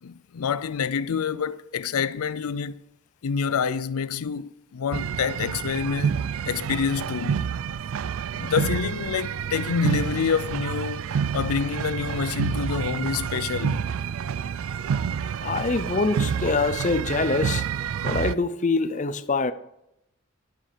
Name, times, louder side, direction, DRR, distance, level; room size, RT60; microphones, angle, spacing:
voice 1, 0.0-2.8 3.2-6.2 6.5-7.5 8.4-11.0 11.3-13.9, left 6 dB, 90° left, 0.5 m, -27 dB
sound 1, 4.9-18.3, right 7 dB, 75° right, 0.4 m, -28 dB
voice 2, 15.4-17.7 18.0-19.5, left 3 dB, 35° left, 0.5 m, -24 dB
11.0 x 9.0 x 5.0 m
head